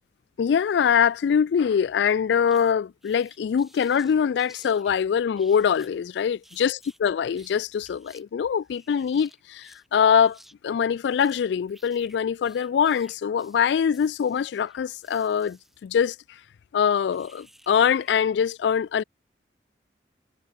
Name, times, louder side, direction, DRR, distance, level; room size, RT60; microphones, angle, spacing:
voice 1, 0.4-10.4 10.6-16.2 16.7-19.0, left 7 dB, 75° left, 0.3 m, -23 dB
sound 1, 2.5-2.7 3.0-4.9 5.4-6.0 6.4-7.6 7.8-8.2 8.5-9.9 10.1-10.5 10.8-15.8 17.1-18.1 18.5-18.6, equal, ahead, 5.2 m, -55 dB
head